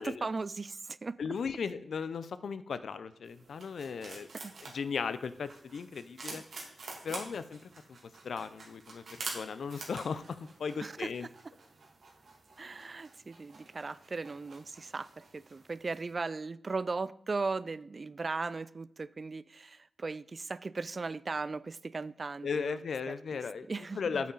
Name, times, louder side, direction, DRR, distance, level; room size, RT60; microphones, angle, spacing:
voice 1, 0.0-1.1 4.4-4.5 6.3-6.5 7.1-7.2 10.8-11.3 12.6-15.1 15.3-23.4 23.7-24.3, right 3 dB, 45° right, 18 dB, 0.4 m, -38 dB
voice 2, 1.2-4.3 4.7-6.4 7.0-7.6 8.2-9.0 9.3-11.3 22.4-23.7 24.0-24.3, left 5 dB, 80° left, 13 dB, 0.6 m, -36 dB
sound 1, 3.3-16.1, right 3 dB, 70° right, 2.5 m, -48 dB
8.5 x 8.4 x 4.0 m, 0.72 s
wide cardioid pair, 85°, 0 cm